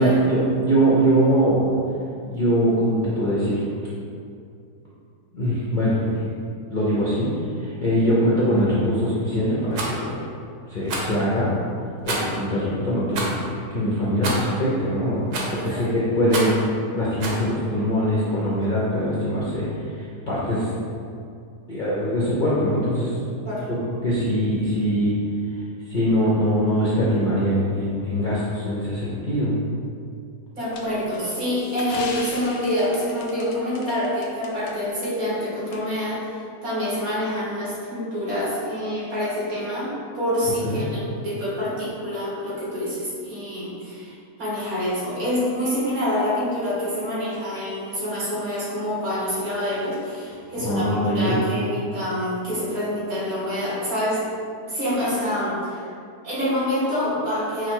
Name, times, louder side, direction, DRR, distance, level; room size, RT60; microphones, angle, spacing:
voice 1, 0.0-1.7 2.2-3.6 5.3-6.2 6.7-7.3 7.6-10.1 10.7-11.5 12.1-15.2 15.5-16.6 16.9-19.7 20.3-20.7 21.7-23.1 23.7-25.1 25.9-29.5 40.6-40.9 50.6-51.4, equal, 50° left, -8 dB, 0.6 m, -22 dB
Rattle, 9.7-9.9 10.9-11.2 12.1-12.4 13.1-13.4 14.2-14.5 15.3-15.6 16.3-16.6 17.2-17.4, right 2 dB, 90° right, 1.3 m, -28 dB
voice 2, 15.6-15.9 23.4-23.7 30.6-54.3 54.6-55.9 56.2-57.7, left 1 dB, 65° right, -8 dB, 1.7 m, -26 dB
sound 1, 30.7-34.7 35.0-35.1 35.7-35.8, left 4 dB, 85° left, 1.1 m, -39 dB
4.9 x 2.1 x 4.5 m, 2.4 s
omnidirectional pair, 1.7 m